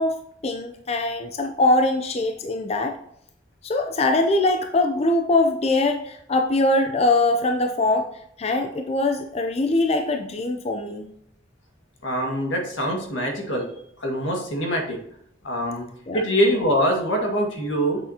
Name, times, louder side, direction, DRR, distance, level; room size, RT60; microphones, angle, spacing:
voice 1, 0.0-3.0 3.6-8.1 8.4-11.1 16.1-16.2, left 2 dB, 35° left, 5 dB, 0.5 m, -22 dB
voice 2, 12.0-13.7 14.0-15.0 15.4-15.9 16.1-18.0, equal, 85° left, 1 dB, 1.9 m, -24 dB
8.1 x 6.6 x 2.8 m, 0.72 s
head